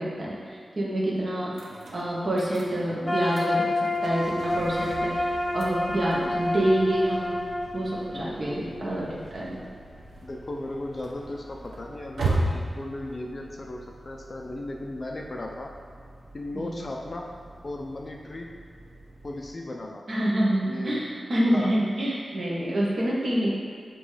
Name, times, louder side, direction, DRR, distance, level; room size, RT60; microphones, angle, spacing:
voice 1, 0.0-7.5 7.7-9.1 9.3-9.5 16.5-16.8 20.1-23.5, right 1 dB, 45° right, -5 dB, 1.3 m, -27 dB
sound 1, 1.5-19.5, right 2 dB, 85° right, 0.9 m, -38 dB
sound 2, 3.0-9.0, left 1 dB, 10° left, 0.9 m, -29 dB
voice 2, 10.2-15.7 16.3-17.3 17.6-18.5 19.2-20.1 20.6-21.0 21.5-21.8, left 2 dB, 35° left, 1 dB, 0.5 m, -36 dB
7.6 x 3.0 x 4.9 m, 2.3 s
wide cardioid pair, 145°, 0 cm